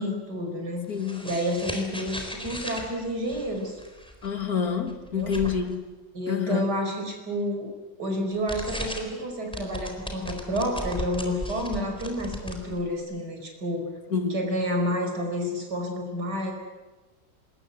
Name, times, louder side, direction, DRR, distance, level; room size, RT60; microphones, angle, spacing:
voice 1, 0.0-0.8 1.2-3.8 5.1-5.3 6.1-7.7 8.0-13.9 14.3-16.5, equal, 65° right, 3 dB, 5.6 m, -29 dB
sound 1, 0.8-5.7 8.3-9.2 9.5-13.0, equal, 5° left, 3.9 m, -37 dB
voice 2, 0.9-1.2 4.2-5.8 6.3-6.7 14.1-14.4, left 6 dB, 55° left, 7 dB, 2.3 m, -27 dB
26.5 x 21.0 x 8.3 m, 1.2 s
omnidirectional pair, 1.9 m